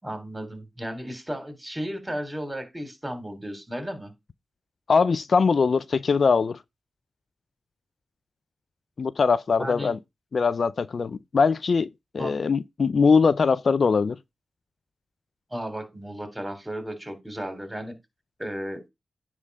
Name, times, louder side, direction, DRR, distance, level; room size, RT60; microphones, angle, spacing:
voice 1, 0.0-4.1 9.6-9.9 12.2-12.4 15.5-17.9 18.4-18.8, equal, 15° right, 3.4 m, -34 dB
voice 2, 4.9-6.6 9.0-10.0 10.3-11.9 12.1-14.2, left 5 dB, 60° left, 0.4 m, -21 dB
9.8 x 3.7 x 5.3 m
cardioid pair, 45°, 0 cm